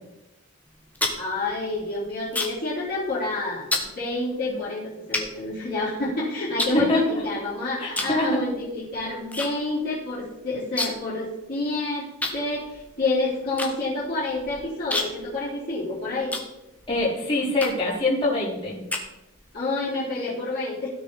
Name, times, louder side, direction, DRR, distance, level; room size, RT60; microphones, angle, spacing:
sound 1, 0.7-2.7 3.0-3.3 3.7-3.9 4.6-4.7 5.1-6.1 6.6-7.4 7.9-8.2 8.5-9.5 9.8-9.9 10.1-11.1 11.4-11.5 12.2-17.0 17.6-18.0 18.5-19.5, left 2 dB, 5° left, 1.2 m, -30 dB
voice 1, 1.2-12.1 12.3-16.3 19.5-20.9, left 2 dB, 40° left, -9 dB, 4.0 m, -28 dB
voice 2, 6.7-7.2 7.8-8.4 16.9-18.8, left 2 dB, 20° left, -7 dB, 4.5 m, -24 dB
16.5 x 6.4 x 4.2 m, 0.93 s
head